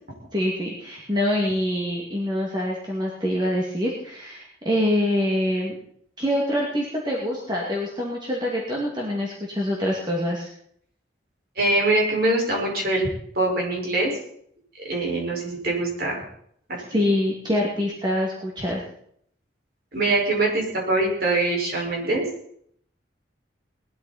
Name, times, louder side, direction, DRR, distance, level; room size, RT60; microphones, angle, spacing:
voice 1, 0.3-5.8 6.2-10.5 16.9-18.8, left 1 dB, 25° right, -3 dB, 2.5 m, -25 dB
voice 2, 11.6-13.1 13.3-14.1 14.9-16.2 16.9-17.1 19.9-22.2, right 2 dB, 55° right, -1 dB, 5.6 m, -23 dB
20.0 x 12.5 x 4.3 m, 0.67 s
head